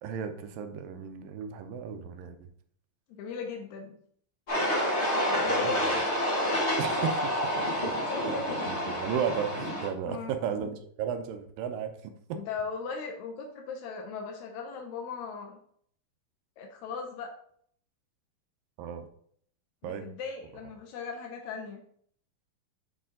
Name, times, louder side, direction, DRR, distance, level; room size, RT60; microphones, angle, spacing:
voice 1, 0.0-2.4 5.5-5.8 6.8-7.3 8.3-12.4 18.8-19.1 19.8-20.1, right 7 dB, 80° right, 7 dB, 2.2 m, -34 dB
voice 2, 3.1-4.0 5.3-6.1 6.5-7.1 7.6-7.8 8.1-8.6 10.1-10.3 12.3-15.6 16.6-17.3 19.8-21.8, left 5 dB, 85° left, 3 dB, 1.6 m, -38 dB
sound 1, 4.5-9.9, equal, 50° left, 0.8 m, -28 dB
8.5 x 4.3 x 3.8 m, 0.63 s
omnidirectional pair, 4.4 m